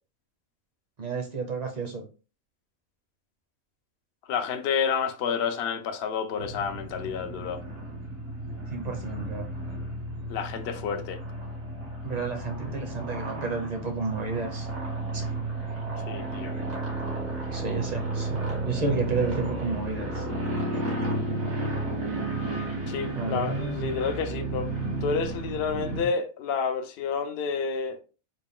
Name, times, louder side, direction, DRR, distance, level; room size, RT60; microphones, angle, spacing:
voice 1, 1.0-2.0 8.7-9.5 12.0-14.7 15.1-15.2 17.5-20.2 23.1-23.9, right 4 dB, 40° right, 0.6 m, -31 dB
voice 2, 4.3-7.6 10.3-11.2 16.1-16.5 22.9-24.7 25.0-28.0, left 6 dB, 65° left, 0.6 m, -29 dB
sound 1, 6.4-26.0, right 2 dB, 75° right, 1.9 m, -33 dB
3.9 x 2.2 x 3.6 m
omnidirectional pair, 1.4 m